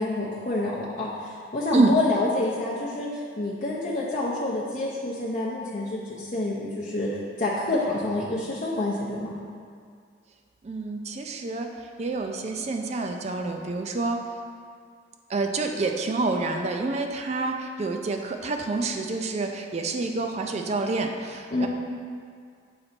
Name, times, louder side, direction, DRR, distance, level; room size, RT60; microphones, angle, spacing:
voice 1, 0.0-7.1 7.4-9.3 21.5-21.7, left 2 dB, 45° left, -5 dB, 0.6 m, -28 dB
voice 2, 10.6-11.7 12.0-14.2 15.3-21.7, right 3 dB, 35° right, 4 dB, 0.4 m, -27 dB
6.6 x 3.9 x 4.3 m, 2.1 s
head